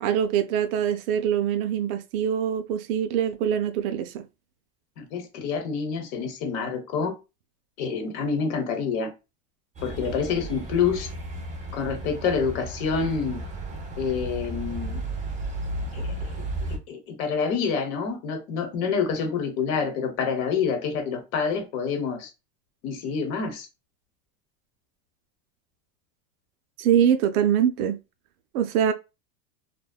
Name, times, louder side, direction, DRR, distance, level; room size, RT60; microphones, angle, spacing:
voice 1, 0.0-4.2 26.8-28.0 28.5-28.9, right 9 dB, 65° right, 0.5 m, -23 dB
voice 2, 5.0-7.1 7.8-9.1 9.8-11.1 11.7-13.4 14.0-15.0 15.9-16.4 16.7-22.3 22.8-23.7, left 6 dB, 60° left, 0.9 m, -27 dB
sound 1, 9.8-16.8, right 1 dB, 15° right, 0.5 m, -34 dB
2.6 x 2.1 x 2.2 m
supercardioid pair, 135°, 47 cm